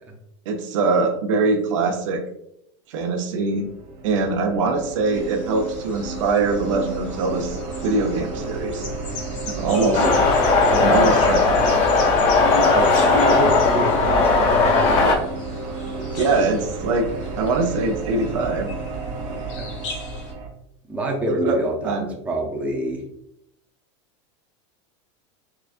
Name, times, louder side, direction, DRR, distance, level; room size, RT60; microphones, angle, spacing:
voice 1, 0.5-2.2 2.9-3.7 4.0-7.6 7.8-8.9 9.5-10.0 10.8-11.5 16.2-17.1 17.4-18.7 21.4-21.6 21.8-22.1, right 3 dB, 80° right, 3 dB, 0.7 m, -22 dB
sound 1, 3.5-20.5, right 3 dB, 40° right, 0.8 m, -32 dB
sound 2, 5.1-20.3, left 3 dB, 75° left, 1.1 m, -39 dB
voice 2, 9.7-10.1 10.6-10.8 12.7-14.5 16.0-16.4 19.2-19.8 20.9-23.0, right 1 dB, 10° right, -1 dB, 0.5 m, -26 dB
sound 3, 9.9-15.2, left 3 dB, 35° left, 0.6 m, -17 dB
4.8 x 2.4 x 2.4 m, 0.77 s
supercardioid pair, 155°, 16 cm